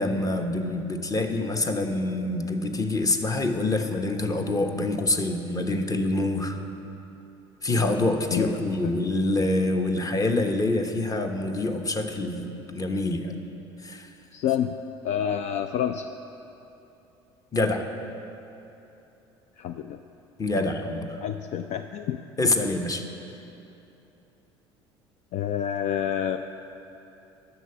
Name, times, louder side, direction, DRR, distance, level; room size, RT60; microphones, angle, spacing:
voice 1, 0.0-6.6 7.6-13.3 13.8-14.1 17.5-17.9 20.4-21.2 22.4-23.1, left 2 dB, 25° left, 5 dB, 1.0 m, -26 dB
voice 2, 14.3-14.8 15.0-16.1 19.6-20.0 20.5-20.6 21.2-22.2 25.3-26.4, left 9 dB, 55° left, 8 dB, 0.4 m, -28 dB
11.0 x 6.8 x 6.8 m, 2.9 s
hypercardioid pair, 65°, 14 cm